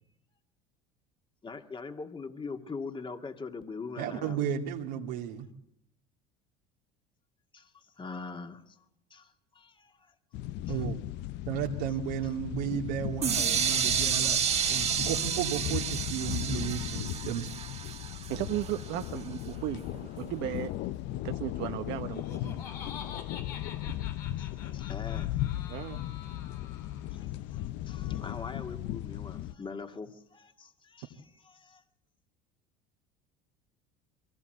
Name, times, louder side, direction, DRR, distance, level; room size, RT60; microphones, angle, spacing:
voice 1, 1.4-4.6 7.5-8.8 9.1-10.1 10.7-10.8 24.4-25.3 27.1-31.8, left 4 dB, 25° left, 5 dB, 2.1 m, -43 dB
voice 2, 4.0-5.5 10.7-11.0 11.5-14.4 14.7-17.5, right 9 dB, 80° right, 1 dB, 2.3 m, -33 dB
sound 1, 10.3-29.5, left 14 dB, 60° left, 0.8 m, -37 dB
sound 2, 13.2-19.0, right 7 dB, 30° right, 1.3 m, -30 dB
voice 3, 18.3-20.7 21.2-22.7 25.7-26.0, right 14 dB, 60° right, 6 dB, 1.1 m, -35 dB
Laughter, 21.9-27.2, left 7 dB, 85° left, 3.6 m, -47 dB
23.0 x 18.0 x 7.9 m, 0.75 s
hypercardioid pair, 80°, 20 cm